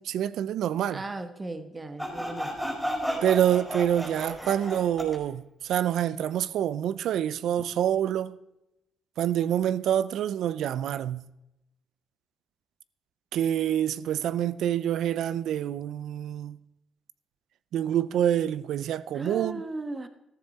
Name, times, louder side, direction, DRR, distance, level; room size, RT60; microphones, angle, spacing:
voice 1, 0.0-1.0 3.2-8.4 9.2-11.2 13.3-16.6 17.7-19.6, right 10 dB, 75° right, 0.6 m, -27 dB
voice 2, 0.9-2.6 19.1-20.1, right 2 dB, 25° right, 1.5 m, -36 dB
Sawing, 2.0-5.2, equal, ahead, 5.3 m, -33 dB
14.0 x 14.0 x 4.2 m
cardioid pair, 90°, 0 cm